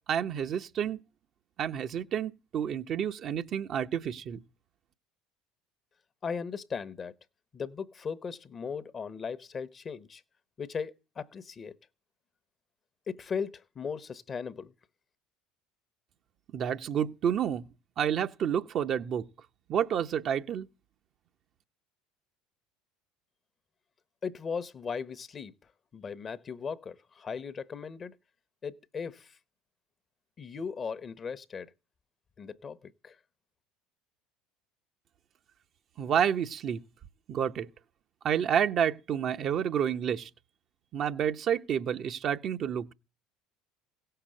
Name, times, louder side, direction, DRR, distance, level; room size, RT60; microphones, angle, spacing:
voice 1, 0.1-1.0 1.6-4.4 16.5-17.7 18.0-19.3 19.7-20.7 36.0-36.8 37.3-37.7 38.2-40.3 40.9-42.9, right 8 dB, 50° right, 0.8 m, -29 dB
voice 2, 6.2-7.2 7.5-10.2 10.6-11.7 13.1-14.7 24.2-28.1 28.6-29.4 30.4-31.7 32.4-33.2, left 6 dB, 35° left, 0.9 m, -37 dB
16.5 x 6.7 x 7.6 m
hypercardioid pair, 75°, 0 cm